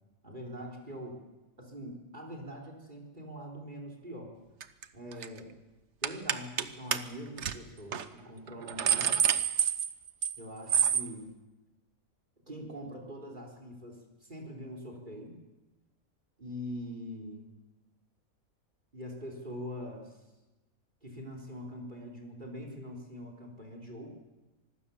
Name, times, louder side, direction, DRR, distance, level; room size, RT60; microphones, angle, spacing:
voice 1, 0.2-1.2 1.6-4.3 4.9-5.5 6.0-9.2 10.4-11.3 12.5-15.4 16.4-17.5 18.9-20.2 21.0-24.1, equal, 35° right, 3 dB, 4.1 m, -43 dB
sound 1, 4.6-4.8 5.1-5.4 6.0-6.6 6.9-7.0 7.4-7.5 7.9-8.0 8.5-10.4 10.7-11.1, right 8 dB, 60° right, 1.2 m, -27 dB
25.5 x 19.0 x 7.1 m, 1.1 s
omnidirectional pair, 1.5 m